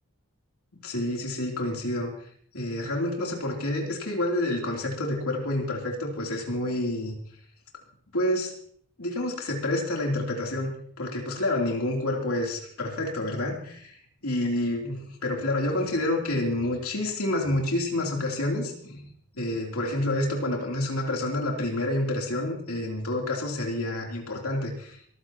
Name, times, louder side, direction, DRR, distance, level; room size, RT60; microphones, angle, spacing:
voice 1, 0.7-2.1 2.5-7.2 8.1-8.5 9.0-10.7 11.0-14.0 14.2-19.1 19.4-25.0, left 1 dB, 85° left, -1 dB, 3.2 m, -28 dB
23.0 x 14.5 x 3.0 m, 0.62 s
head